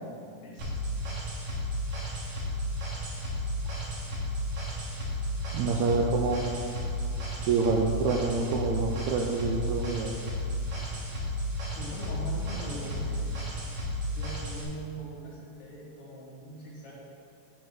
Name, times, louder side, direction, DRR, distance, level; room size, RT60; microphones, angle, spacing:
voice 1, 0.4-0.8 11.7-13.2 14.1-16.9, right 1 dB, 65° left, -6 dB, 2.7 m, -41 dB
sound 1, 0.6-14.6, equal, 65° right, 2.6 m, -33 dB
voice 2, 5.5-6.5 7.5-10.2, right 4 dB, 80° right, 0 dB, 1.7 m, -27 dB
9.6 x 3.8 x 6.2 m, 2.4 s
omnidirectional pair, 3.7 m